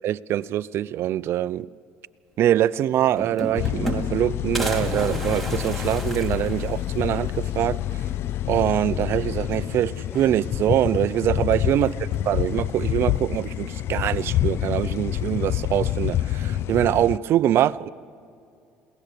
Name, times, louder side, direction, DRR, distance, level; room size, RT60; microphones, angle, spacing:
voice 1, 0.0-1.7 2.4-7.8 8.5-11.9 12.2-17.9, right 12 dB, 55° right, 0.5 m, -24 dB
sound 1, 2.6-2.7 2.9-4.2 4.5-7.1 7.6-7.7 7.9-8.0 9.2-9.6 10.0-10.7 11.8-12.4, right 1 dB, 5° left, 3.7 m, -33 dB
sound 2, 3.6-17.2, left 12 dB, 60° left, 0.4 m, -27 dB
22.0 x 17.5 x 6.8 m
supercardioid pair, 95°, 5 cm